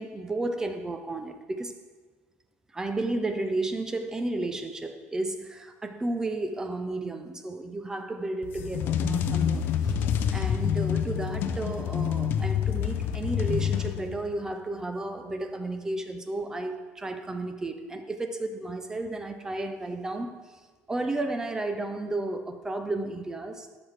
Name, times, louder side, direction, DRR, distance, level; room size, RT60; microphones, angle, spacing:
voice 1, 0.0-1.7 2.7-10.0 10.3-20.6 20.9-23.8, right 2 dB, 15° right, 7 dB, 0.5 m, -33 dB
sound 1, 8.4-14.4, left 8 dB, 50° left, 0.5 m, -27 dB
12.5 x 5.7 x 3.3 m, 1.4 s
cardioid pair, 155°, 5 cm